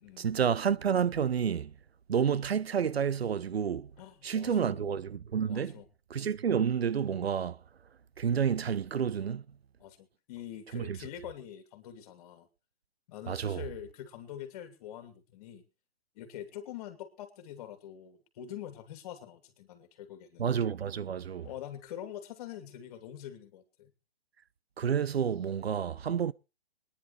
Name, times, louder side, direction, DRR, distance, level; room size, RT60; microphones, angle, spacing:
voice 1, 0.2-1.7 2.1-3.9 4.2-5.7 6.1-7.6 8.2-9.4 10.7-11.0 13.3-13.6 20.4-21.5 24.8-26.3, right 7 dB, 80° right, 0.7 m, -29 dB
voice 2, 4.0-4.9 5.5-5.9 9.8-12.5 13.1-15.6 16.1-20.4 21.4-23.9, left 10 dB, 40° left, 2.7 m, -45 dB
24.0 x 10.5 x 3.3 m
hypercardioid pair, 135°, 30 cm